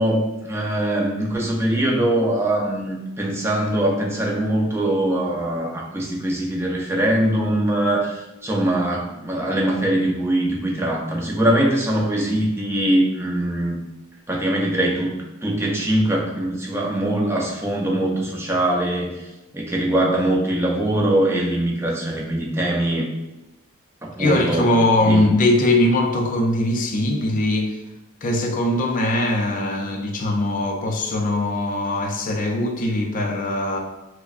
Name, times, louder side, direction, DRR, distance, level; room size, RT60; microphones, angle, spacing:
voice 1, 0.0-13.8 14.3-15.1 15.4-19.2 19.5-23.1 24.0-24.7 25.1-25.3, right 1 dB, 10° right, -2 dB, 0.5 m, -22 dB
voice 2, 24.2-27.8 28.2-33.8, left 1 dB, 40° left, 3 dB, 0.4 m, -21 dB
4.7 x 2.0 x 2.5 m, 1.0 s
head